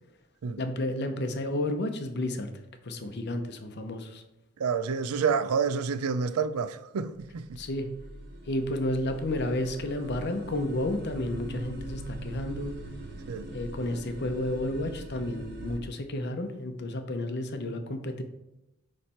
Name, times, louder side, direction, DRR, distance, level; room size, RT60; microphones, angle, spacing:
voice 1, 0.6-2.5 2.8-4.2 7.6-7.9 8.5-12.8 13.5-18.2, left 1 dB, 50° left, 0.8 m, -31 dB
voice 2, 4.6-7.6 13.3-13.5, right 5 dB, 80° right, 0.4 m, -28 dB
sound 1, 7.2-15.8, right 1 dB, 50° right, 1.0 m, -41 dB
9.7 x 3.3 x 4.3 m
head